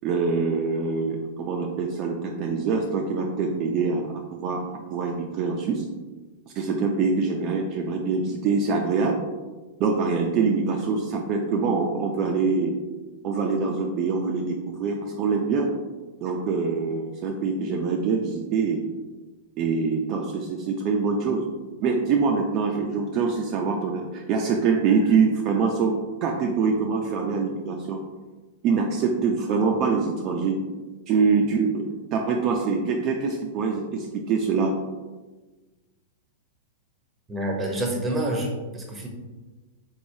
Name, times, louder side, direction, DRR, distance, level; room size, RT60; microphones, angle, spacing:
voice 1, 0.0-4.0 4.4-4.6 4.9-5.8 6.5-9.2 9.8-12.7 13.2-15.7 16.2-18.9 19.6-21.4 21.8-25.9 26.2-28.0 28.6-30.5 31.1-31.8 32.1-34.7, right 5 dB, 40° right, 0 dB, 0.4 m, -24 dB
voice 2, 37.3-39.1, right 1 dB, 15° right, 0 dB, 0.7 m, -27 dB
3.9 x 3.1 x 2.6 m, 1.2 s
hypercardioid pair, 135°, 0 cm